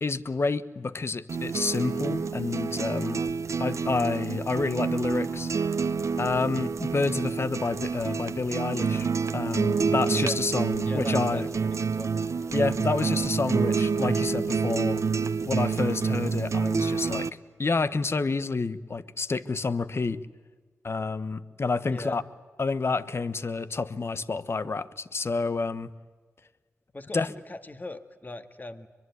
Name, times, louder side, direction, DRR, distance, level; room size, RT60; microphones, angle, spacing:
voice 1, 0.0-3.2 3.6-5.5 6.2-9.1 9.3-11.5 12.5-15.0 15.5-17.3 17.6-20.2 20.8-22.2 22.6-25.9 27.1-27.3, left 4 dB, 50° left, 14 dB, 1.2 m, -29 dB
sound 1, 1.3-17.3, right 5 dB, 70° right, 1.0 m, -28 dB
voice 2, 10.8-12.1 21.8-22.2 26.9-28.9, left 2 dB, 35° left, 9 dB, 2.1 m, -39 dB
23.5 x 23.0 x 9.6 m, 1.4 s
cardioid pair, 55°, 5 cm